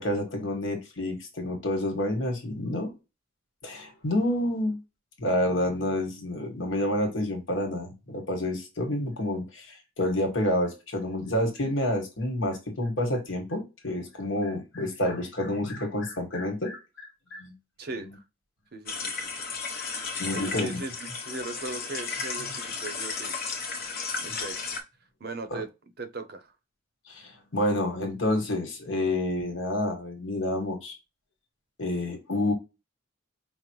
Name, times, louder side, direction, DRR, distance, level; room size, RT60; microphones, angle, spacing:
voice 1, 0.0-2.9 3.6-4.8 5.2-17.5 20.2-20.8 25.5-25.6 27.1-30.9 31.8-32.5, left 1 dB, 70° left, 1.4 m, -29 dB
voice 2, 17.8-18.2 18.7-19.3 20.3-20.9 21.2-23.3 24.2-24.8 25.2-25.7 26.0-26.5, right 3 dB, 50° right, 0.6 m, -38 dB
sound 1, 18.9-24.8, left 4 dB, 50° left, 0.8 m, -34 dB
5.2 x 2.1 x 3.0 m
head